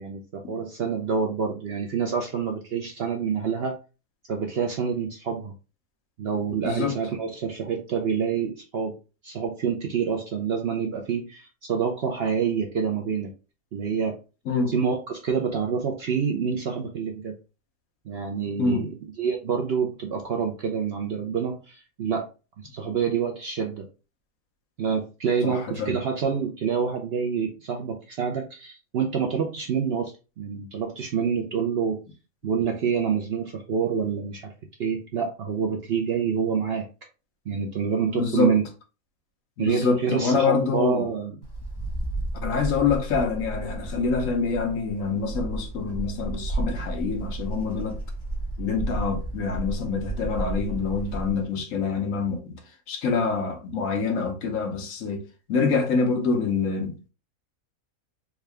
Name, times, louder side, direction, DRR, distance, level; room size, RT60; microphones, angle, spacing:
voice 1, 0.0-3.8 4.3-5.5 6.2-8.9 9.2-13.3 13.7-14.2 14.7-17.3 18.1-18.9 19.2-22.3 22.7-23.9 24.8-32.0 32.4-34.5 34.8-36.9 37.5-38.6 39.6-41.3, right 6 dB, 60° right, 0.7 m, -27 dB
voice 2, 6.6-6.9 14.5-14.7 18.6-18.9 25.4-26.0 32.6-32.7 38.1-38.5 39.6-41.1 42.4-48.0 48.6-52.6 52.9-55.2 55.5-57.1, left 4 dB, 70° left, 1.1 m, -26 dB
Wind, 41.4-51.4, right 2 dB, 20° left, 0.8 m, -32 dB
3.6 x 2.3 x 3.2 m
omnidirectional pair, 1.5 m